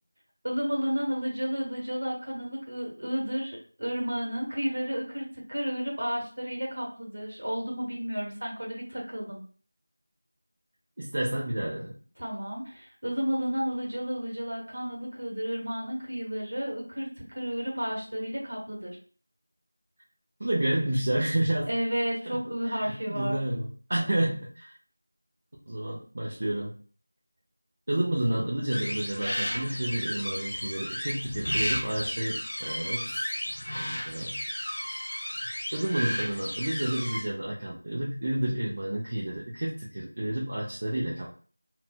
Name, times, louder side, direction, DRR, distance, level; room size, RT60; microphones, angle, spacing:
voice 1, 0.4-9.4 12.2-19.0 21.7-23.4, equal, 50° right, -2 dB, 1.2 m, -32 dB
voice 2, 11.0-12.0 20.4-21.7 22.3-22.4 22.7-24.7 25.7-26.8 27.9-33.3 33.7-34.3 35.7-41.3, right 1 dB, 30° right, -4 dB, 0.4 m, -30 dB
sound 1, 28.7-37.2, equal, 55° left, 0.6 m, -33 dB
2.6 x 2.1 x 2.6 m, 0.41 s
figure-of-eight pair, 175°, 0 cm